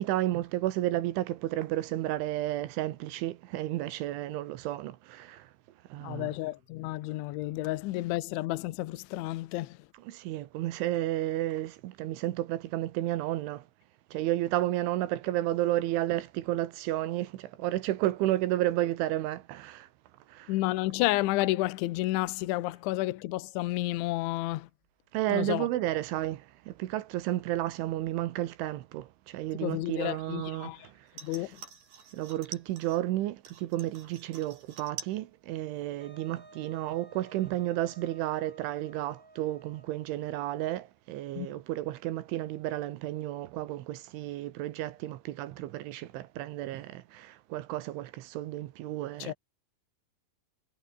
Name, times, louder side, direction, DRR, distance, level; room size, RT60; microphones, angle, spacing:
voice 1, 0.0-5.5 5.9-6.3 10.1-13.7 14.1-19.9 20.3-20.5 25.1-31.1 31.4-31.5 32.1-49.3, right 15 dB, 75° right, 3.5 m, -32 dB
voice 2, 6.0-9.8 20.5-24.7 25.3-25.7 29.6-30.9 31.2-31.5 41.4-41.5 49.2-49.3, left 18 dB, 75° left, 3.3 m, -31 dB
sound 1, 31.1-33.0 33.4-35.2 35.5-36.1 36.5-36.6, right 6 dB, 50° right, 5.5 m, -46 dB
Wind instrument woodwind instrument, 36.0-40.4, right 2 dB, 15° right, 2.5 m, -55 dB
omnidirectional pair, 5.7 m